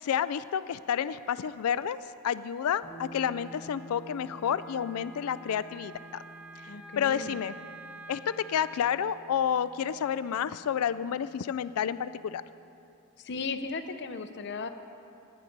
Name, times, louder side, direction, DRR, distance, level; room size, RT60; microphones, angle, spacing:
voice 1, 0.0-2.0 2.2-6.2 7.0-7.5 8.1-12.4, left 8 dB, 75° left, 15 dB, 0.3 m, -30 dB
sound 1, 2.8-12.6, right 1 dB, 35° left, 1.6 m, -51 dB
Wind instrument woodwind instrument, 3.2-8.9, right 2 dB, 5° right, 0.7 m, -49 dB
voice 2, 6.7-7.4 13.2-14.7, left 4 dB, 55° left, 9 dB, 0.7 m, -36 dB
18.5 x 9.4 x 5.2 m, 2.6 s
head